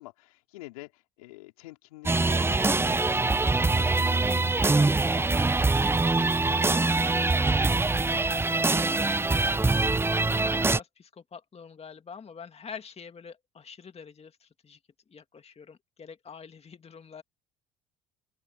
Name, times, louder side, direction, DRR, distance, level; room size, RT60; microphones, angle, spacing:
voice 1, 0.0-7.0 7.8-9.8, left 20 dB, 85° left, 4.2 m, -49 dB
sound 1, 2.1-10.8, right 3 dB, 15° right, 0.7 m, -24 dB
voice 2, 10.3-14.8 15.1-17.2, left 6 dB, 35° left, 2.1 m, -46 dB
open air
hypercardioid pair, 60°, 18 cm